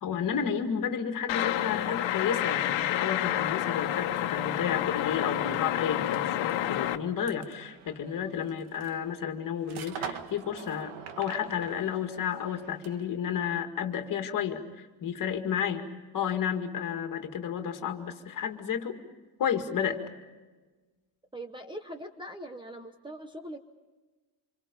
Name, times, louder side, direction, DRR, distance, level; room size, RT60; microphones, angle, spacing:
voice 1, 0.0-15.9 16.1-19.0 19.4-20.0, left 8 dB, 40° left, 5 dB, 2.2 m, -32 dB
sound 1, 1.3-7.0, left 12 dB, 65° left, 1.5 m, -29 dB
sound 2, 6.4-13.2, right 8 dB, 80° right, 1.8 m, -45 dB
voice 2, 21.3-23.6, right 1 dB, 10° right, 7 dB, 0.9 m, -41 dB
27.5 x 27.0 x 5.4 m, 1.2 s
cardioid pair, 175°, 48 cm